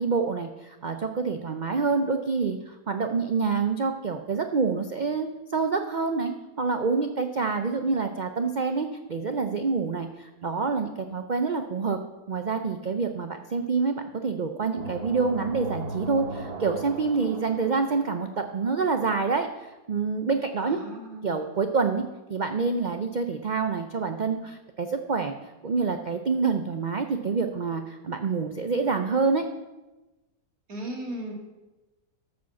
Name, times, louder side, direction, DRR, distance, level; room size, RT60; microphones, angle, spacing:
voice 1, 0.0-12.0 12.3-20.8 21.2-25.4 25.6-29.4, right 4 dB, 85° right, 6 dB, 0.4 m, -27 dB
sound 1, 14.8-18.6, right 2 dB, 45° right, 1.0 m, -37 dB
voice 2, 20.6-21.5 30.7-31.3, right 1 dB, 65° right, -1 dB, 2.8 m, -37 dB
13.0 x 5.2 x 7.0 m, 1.1 s
omnidirectional pair, 1.6 m